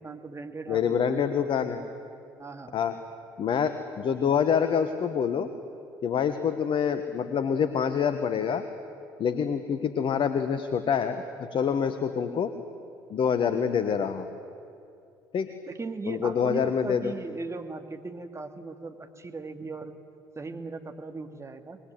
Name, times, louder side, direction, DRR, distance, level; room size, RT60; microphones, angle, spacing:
voice 1, 0.0-1.5 2.4-2.8 15.7-20.0 20.3-21.8, right 3 dB, 25° right, 7 dB, 2.4 m, -38 dB
voice 2, 0.7-1.8 2.7-2.9 3.4-5.5 6.0-8.6 9.2-12.5 13.1-14.3 15.3-15.5 16.1-17.1, left 7 dB, 50° left, 10 dB, 1.5 m, -26 dB
27.0 x 21.5 x 9.6 m, 2.6 s
hypercardioid pair, 55°, 11 cm